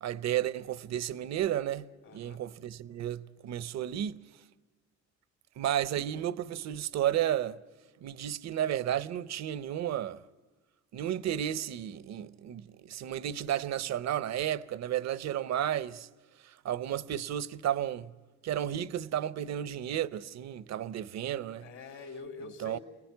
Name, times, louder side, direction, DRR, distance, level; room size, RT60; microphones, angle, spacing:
voice 1, 0.0-4.2 5.6-7.6 8.0-10.2 10.9-16.1 16.4-18.1 18.4-21.6 22.6-22.8, right 11 dB, 60° right, 0.7 m, -33 dB
voice 2, 2.0-2.4 21.6-22.8, left 4 dB, 65° left, 3.5 m, -45 dB
29.0 x 19.0 x 9.5 m
cardioid pair, 90°, 30 cm